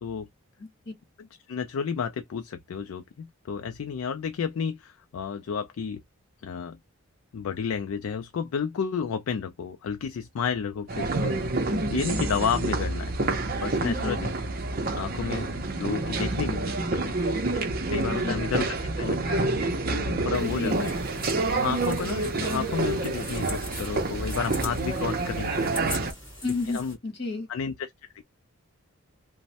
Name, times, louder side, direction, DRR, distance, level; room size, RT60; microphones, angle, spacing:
voice 1, 1.2-6.0 6.4-6.8 7.3-11.4 11.9-13.1 13.6-14.3 14.9-15.5 15.8-17.2 17.9-18.6 19.0-19.4 19.9-20.9 21.5-25.7 26.7-27.0 27.5-28.2, left 6 dB, 65° left, 0.3 m, -31 dB
sound 1, 10.9-26.1, right 2 dB, 40° right, 0.5 m, -28 dB
voice 2, 13.8-14.2 18.1-18.4 20.4-20.9 26.4-27.5, left 3 dB, 50° left, 1.3 m, -31 dB
sound 2, 20.3-26.9, left 1 dB, 20° left, 1.8 m, -41 dB
3.0 x 2.1 x 2.7 m
head